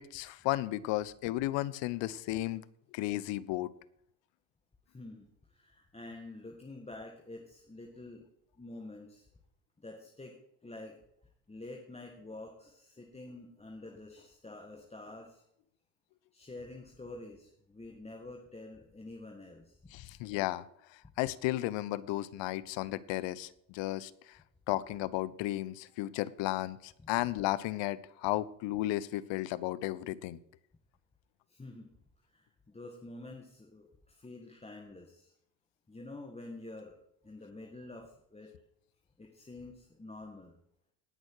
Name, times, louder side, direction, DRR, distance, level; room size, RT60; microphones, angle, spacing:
voice 1, 0.0-2.7 2.9-3.7 19.9-20.6 21.2-24.1 24.7-30.4, left 16 dB, 60° left, 19 dB, 0.8 m, -34 dB
voice 2, 4.9-8.2 8.6-9.3 9.8-11.0 11.5-15.4 16.3-19.9 27.0-27.1 31.5-31.9 32.3-35.3 35.9-37.0 37.2-38.5 39.2-40.5, left 2 dB, 10° left, 1 dB, 1.8 m, -48 dB
18.0 x 6.3 x 4.8 m, 0.72 s
supercardioid pair, 90°, 50 cm